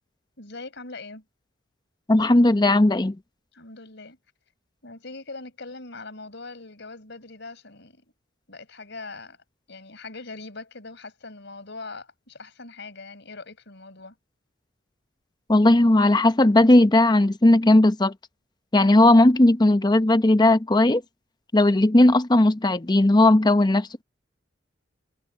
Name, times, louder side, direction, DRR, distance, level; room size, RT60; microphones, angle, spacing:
voice 1, 0.4-1.2 3.5-4.2 4.8-8.0 8.5-9.4 9.7-14.2, left 3 dB, 65° left, 6.0 m, -41 dB
voice 2, 2.1-3.2 15.5-18.1 18.7-21.0 21.5-24.0, left 1 dB, 20° left, 0.7 m, -17 dB
head